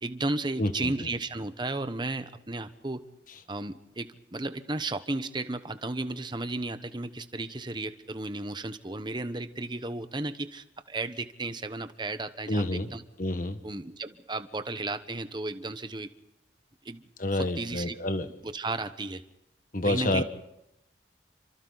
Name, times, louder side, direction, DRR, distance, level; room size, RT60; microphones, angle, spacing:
voice 1, 0.0-3.0 3.5-13.0 13.6-16.1 16.8-17.1 17.3-18.0 18.4-19.2 19.8-20.2, right 2 dB, 25° right, 10 dB, 1.1 m, -34 dB
voice 2, 0.6-1.1 12.5-12.9 13.2-13.6 17.2-18.3 19.7-20.2, left 1 dB, 50° left, 9 dB, 1.6 m, -28 dB
29.0 x 25.5 x 4.1 m, 0.86 s
head